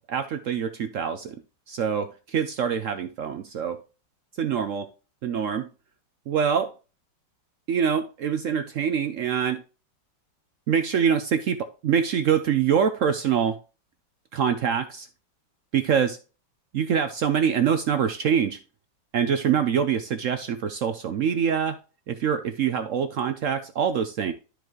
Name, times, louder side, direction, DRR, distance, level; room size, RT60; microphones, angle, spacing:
voice 1, 0.1-1.4 1.7-3.8 4.4-4.9 5.2-5.7 6.3-6.7 7.7-9.6 10.7-13.6 14.3-15.1 15.7-16.2 16.7-18.6 19.1-21.8 22.1-24.3, right 7 dB, 70° right, 9 dB, 0.7 m, -24 dB
12.0 x 4.8 x 3.1 m, 0.33 s
omnidirectional pair, 1.9 m